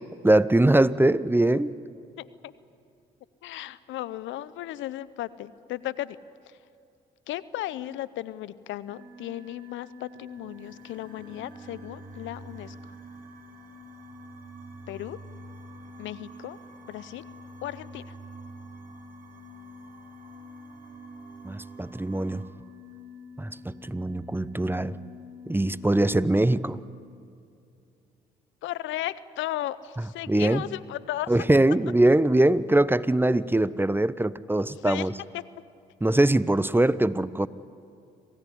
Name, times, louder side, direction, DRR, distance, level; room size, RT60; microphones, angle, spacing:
voice 1, 0.2-1.7 21.4-22.4 23.4-25.0 25.5-26.8 30.3-30.6 31.3-35.1 36.0-37.5, right 1 dB, 10° right, 17 dB, 0.8 m, -22 dB
voice 2, 2.2-2.5 3.4-6.2 7.3-12.7 14.9-15.2 16.0-16.6 16.9-17.2 17.6-18.1 28.6-31.3 34.8-35.1 35.3-35.4, left 14 dB, 70° left, 17 dB, 0.7 m, -35 dB
sound 1, 8.9-26.7, left 2 dB, 80° right, 1.4 m, -48 dB
sound 2, 10.1-22.4, right 2 dB, 40° right, 7.1 m, -49 dB
27.0 x 17.0 x 10.0 m, 2.5 s
hypercardioid pair, 50°, 20 cm